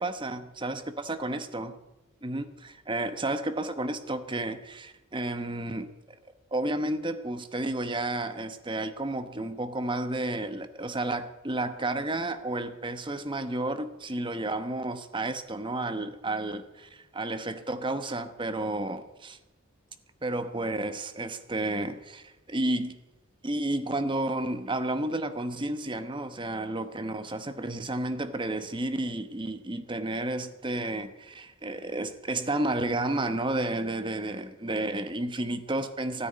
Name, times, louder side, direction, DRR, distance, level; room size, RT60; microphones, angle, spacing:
voice 1, 0.0-1.7 2.2-5.9 6.5-19.4 20.2-23.0 23.4-36.3, right 2 dB, 25° right, 1.1 m, -31 dB
13.5 x 9.9 x 9.0 m
head